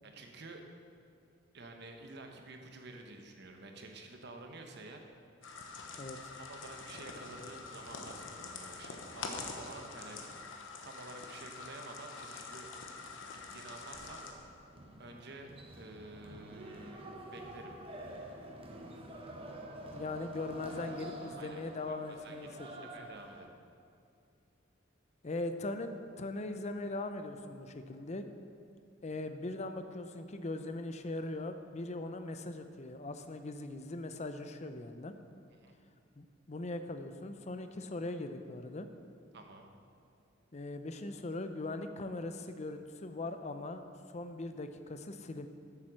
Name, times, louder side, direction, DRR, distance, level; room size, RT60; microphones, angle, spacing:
voice 1, 0.0-0.6 1.5-5.0 6.4-10.5 10.8-12.7 13.3-14.2 15.0-15.5 15.8-17.7 21.4-21.6 21.9-23.5 35.6-35.8 39.3-39.7, right 2 dB, 60° right, 3 dB, 1.1 m, -50 dB
sound 1, 5.4-14.3, left 4 dB, 70° left, 1.1 m, -45 dB
voice 2, 6.0-6.3 19.9-22.9 25.2-25.9 26.2-28.3 29.0-35.2 36.2-38.9 40.5-43.8 44.1-45.5, left 2 dB, 35° left, 8 dB, 0.6 m, -40 dB
sound 2, 13.9-23.5, right 1 dB, 30° right, 1.0 m, -48 dB
8.7 x 7.5 x 6.3 m, 2.4 s
head